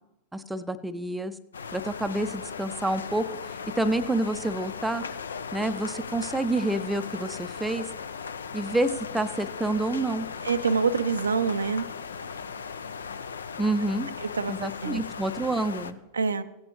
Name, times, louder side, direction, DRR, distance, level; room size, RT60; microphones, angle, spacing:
voice 1, 0.3-1.3 1.7-3.3 3.8-5.0 5.5-7.9 8.5-10.3 13.6-14.1 14.5-16.0, right 2 dB, 5° right, 10 dB, 0.5 m, -28 dB
sound 1, 1.5-15.9, left 6 dB, 70° left, 0.5 m, -37 dB
voice 2, 10.4-11.9 14.2-15.0 16.1-16.4, right 5 dB, 75° right, 11 dB, 0.4 m, -26 dB
16.0 x 8.7 x 3.1 m, 0.98 s
figure-of-eight pair, 90°, 0 cm